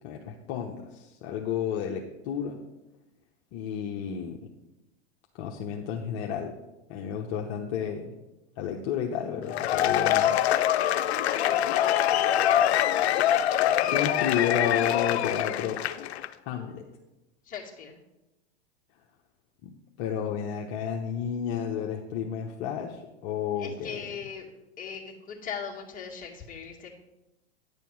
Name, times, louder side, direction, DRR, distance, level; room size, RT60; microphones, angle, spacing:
voice 1, 0.0-2.6 3.5-4.5 5.4-6.6 6.9-8.1 8.6-10.5 13.9-15.8 16.4-16.9 19.6-19.7 20.0-24.1, left 8 dB, 50° left, 1 dB, 1.0 m, -31 dB
Cheering / Applause / Crowd, 9.5-16.3, left 11 dB, 75° left, 0.7 m, -24 dB
voice 2, 11.1-11.7 17.4-18.0 23.6-24.5 24.8-26.9, left 7 dB, 25° left, -1 dB, 2.1 m, -39 dB
10.5 x 6.8 x 4.7 m, 0.98 s
hypercardioid pair, 115°, 33 cm